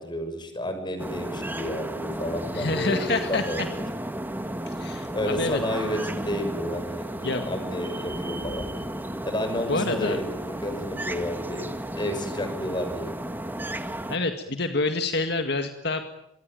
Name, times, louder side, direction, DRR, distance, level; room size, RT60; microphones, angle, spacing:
voice 1, 0.0-3.6 5.1-8.9 9.2-10.2 10.6-11.7 11.9-13.1, left 1 dB, 25° left, 7 dB, 6.6 m, -31 dB
sound 1, 1.0-14.2, right 1 dB, 10° right, 2.0 m, -33 dB
voice 2, 2.5-3.4 4.6-5.6 7.2-7.4 9.7-10.2 14.1-16.1, left 3 dB, 65° left, 6 dB, 2.0 m, -27 dB
27.0 x 23.0 x 9.1 m, 0.79 s
head